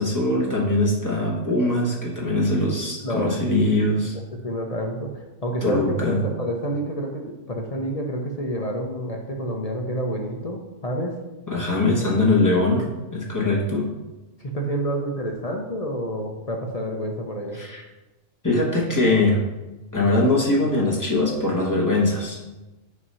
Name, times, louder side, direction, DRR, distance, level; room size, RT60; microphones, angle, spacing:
voice 1, 0.0-4.1 5.6-6.2 11.5-13.9 17.5-17.8 18.4-19.4 19.9-22.4, left 2 dB, 15° left, -3 dB, 1.2 m, -22 dB
voice 2, 3.0-3.8 4.4-11.2 14.4-17.6, right 1 dB, 40° left, 1 dB, 0.6 m, -29 dB
8.0 x 2.9 x 5.4 m, 1.1 s
omnidirectional pair, 1.3 m